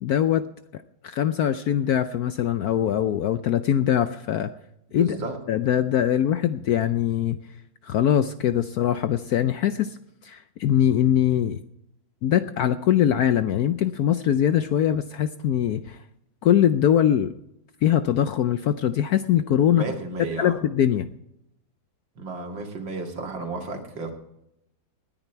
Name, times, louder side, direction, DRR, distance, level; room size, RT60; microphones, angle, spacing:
voice 1, 0.0-0.4 0.7-4.5 4.9-5.2 5.5-7.4 7.8-10.0 10.2-11.6 12.2-16.0 16.4-17.3 17.8-19.8 20.4-21.1, left 10 dB, 70° left, 11 dB, 0.9 m, -22 dB
voice 2, 4.9-5.4 19.7-20.5 22.2-24.1, right 3 dB, 75° right, 3 dB, 2.8 m, -32 dB
19.0 x 10.0 x 4.5 m, 0.81 s
omnidirectional pair, 2.1 m